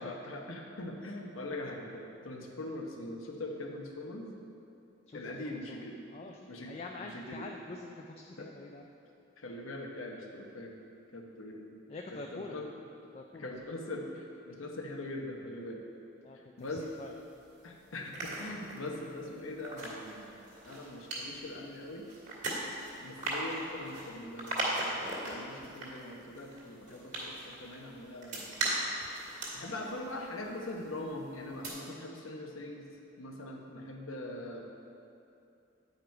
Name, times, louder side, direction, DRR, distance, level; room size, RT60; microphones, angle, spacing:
voice 1, 0.0-4.3 5.1-6.0 6.5-7.5 8.4-8.5 9.4-10.7 11.1-11.7 12.1-12.7 13.3-15.8 16.6-16.9 17.6-20.3 20.7-22.1 23.0-28.7 29.5-32.9 33.2-34.6, left 1 dB, 90° left, 1 dB, 1.0 m, -42 dB
voice 2, 5.1-5.8 6.1-6.4 6.6-8.8 11.9-12.7 13.1-13.5 16.2-17.1, left 3 dB, 30° left, 2 dB, 0.3 m, -45 dB
sound 1, 16.6-17.5 17.9-31.1 31.4-31.7, right 2 dB, 40° right, 1.7 m, -39 dB
9.1 x 4.9 x 4.6 m, 2.7 s
head